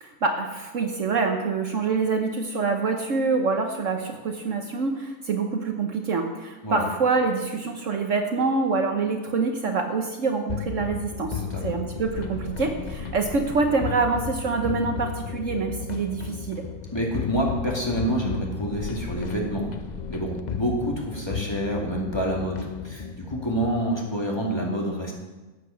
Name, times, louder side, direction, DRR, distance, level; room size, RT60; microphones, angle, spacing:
voice 1, 0.0-16.6, right 4 dB, 60° right, 4 dB, 1.2 m, -26 dB
sound 1, 10.5-23.8, left 7 dB, 55° left, 0.5 m, -34 dB
voice 2, 16.9-19.7 20.1-25.1, right 1 dB, 15° left, -2 dB, 2.4 m, -27 dB
13.0 x 8.2 x 5.8 m, 1.2 s
omnidirectional pair, 1.6 m